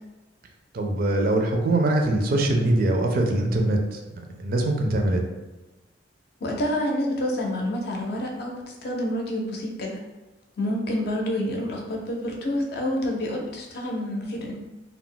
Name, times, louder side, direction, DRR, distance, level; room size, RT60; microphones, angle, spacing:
voice 1, 0.7-5.2, right 1 dB, 50° right, 2 dB, 0.4 m, -23 dB
voice 2, 6.4-10.0 10.6-14.5, left 1 dB, 60° left, 0 dB, 0.5 m, -28 dB
2.3 x 2.0 x 3.8 m, 1.1 s
head